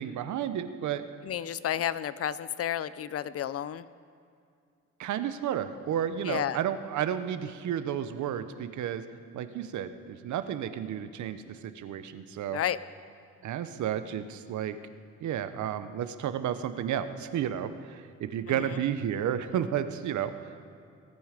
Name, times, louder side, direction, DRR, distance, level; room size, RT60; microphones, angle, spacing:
voice 1, 0.0-1.0 5.0-9.0 9.3-12.6 13.4-14.8 15.2-20.3, right 9 dB, 75° right, 11 dB, 0.8 m, -32 dB
voice 2, 1.2-3.9 6.2-6.6 12.5-12.8 18.5-18.8, left 10 dB, 50° left, 16 dB, 0.5 m, -31 dB
21.0 x 9.4 x 5.1 m, 2.4 s
cardioid pair, 90°, 30 cm